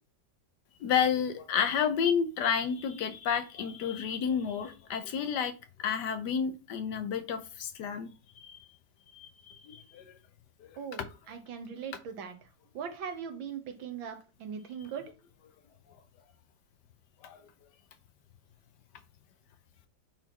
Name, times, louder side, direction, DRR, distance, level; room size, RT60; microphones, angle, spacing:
voice 1, 0.8-5.5 5.8-8.1 8.4-8.6 9.1-10.1 10.6-11.1 17.2-17.4, left 7 dB, 70° left, 10 dB, 1.2 m, -31 dB
voice 2, 11.3-12.3 12.7-15.1, right 7 dB, 90° right, 5 dB, 1.9 m, -39 dB
8.6 x 4.2 x 3.0 m, 0.31 s
omnidirectional pair, 2.1 m